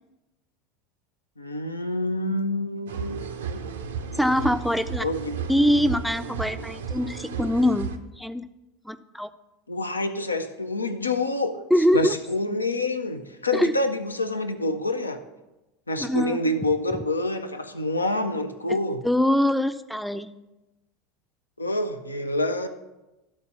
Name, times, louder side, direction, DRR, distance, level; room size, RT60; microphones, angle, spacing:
voice 1, 1.4-3.6 5.0-5.3 9.7-11.6 11.9-15.2 15.9-19.0 21.6-22.7, left 2 dB, 85° left, 8 dB, 0.5 m, -27 dB
sound 1, 2.9-8.0, right 6 dB, 70° right, 0.6 m, -34 dB
voice 2, 4.2-5.0 5.5-8.5 8.8-9.3 11.7-12.2 13.5-13.8 16.0-16.4 18.7-18.8 19.0-20.3, left 1 dB, ahead, 12 dB, 0.4 m, -23 dB
12.0 x 4.3 x 5.6 m, 1.0 s
figure-of-eight pair, 75°, 0 cm